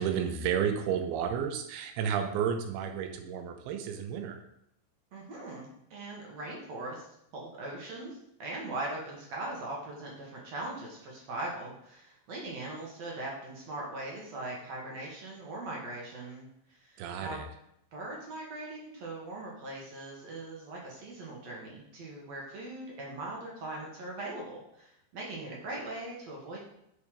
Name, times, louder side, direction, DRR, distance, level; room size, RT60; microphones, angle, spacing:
voice 1, 0.0-4.4 17.0-17.5, right 8 dB, 90° right, 5 dB, 2.7 m, -32 dB
voice 2, 5.1-7.1 7.3-17.4 17.9-26.6, right 2 dB, 55° right, -2 dB, 2.3 m, -40 dB
6.9 x 6.3 x 5.0 m, 0.77 s
omnidirectional pair, 4.5 m